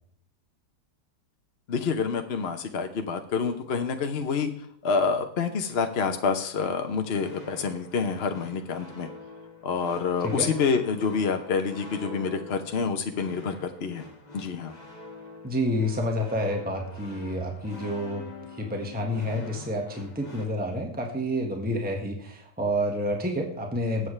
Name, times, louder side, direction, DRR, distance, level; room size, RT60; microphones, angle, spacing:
voice 1, 1.7-4.5 4.8-9.1 9.6-14.0 14.3-14.7, left 5 dB, 50° left, 6 dB, 0.9 m, -27 dB
sound 1, 7.1-20.5, left 3 dB, 25° left, 1.8 m, -44 dB
voice 2, 15.4-18.3 18.6-24.1, equal, 5° right, 1 dB, 1.5 m, -29 dB
20.0 x 8.1 x 3.3 m, 0.65 s
omnidirectional pair, 1.8 m